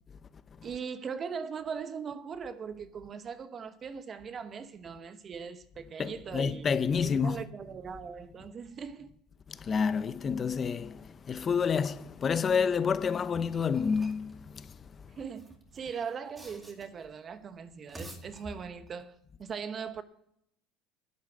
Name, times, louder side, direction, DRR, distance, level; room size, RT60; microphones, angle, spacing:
voice 1, 0.6-6.7 7.0-9.1 15.2-20.0, right 6 dB, 35° right, 1.0 m, -40 dB
voice 2, 6.0-7.4 9.5-15.1, left 6 dB, 30° left, 0.6 m, -29 dB
sound 1, 13.3-14.3 15.2-17.1 17.7-19.0, equal, 15° right, 2.4 m, -49 dB
11.0 x 8.4 x 8.4 m
supercardioid pair, 110°, 0 cm